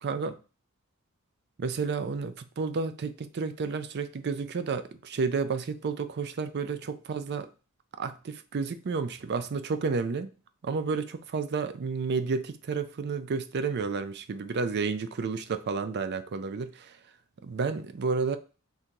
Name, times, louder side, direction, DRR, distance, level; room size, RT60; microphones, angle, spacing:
voice 1, 0.0-0.4 1.6-7.5 8.0-10.3 10.6-17.0 17.4-18.4, right 4 dB, 50° right, 0.4 m, -31 dB
3.8 x 2.7 x 4.5 m
head